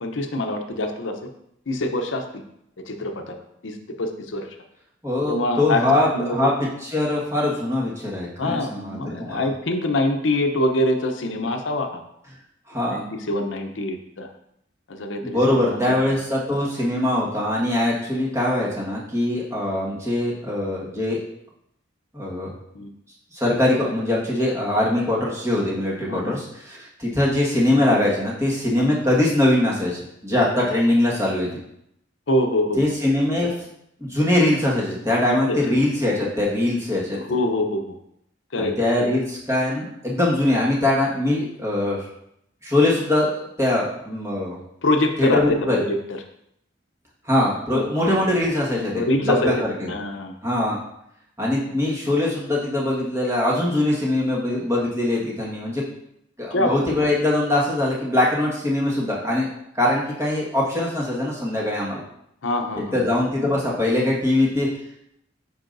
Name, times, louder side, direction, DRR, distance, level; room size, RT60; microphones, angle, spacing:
voice 1, 0.0-1.1 1.7-2.2 2.9-4.5 5.3-6.5 8.4-12.0 12.9-14.3 14.9-15.8 22.7-22.9 26.1-26.3 28.8-28.9 32.3-32.8 35.3-35.6 37.2-38.0 38.5-39.1 44.8-46.0 47.7-47.8 48.8-49.5 49.9-50.3 56.5-56.8 62.4-63.0, left 1 dB, 75° left, 5 dB, 0.7 m, -25 dB
voice 2, 5.0-9.5 12.7-13.0 15.2-21.2 22.1-22.5 23.3-31.5 32.8-33.5 34.0-37.2 38.6-42.0 42.6-44.6 45.2-45.8 47.2-49.9 50.4-50.8 51.4-55.8 56.4-59.5 59.7-62.0 62.9-64.7, left 1 dB, 15° right, -5 dB, 1.6 m, -22 dB
8.6 x 5.6 x 2.6 m, 0.76 s
head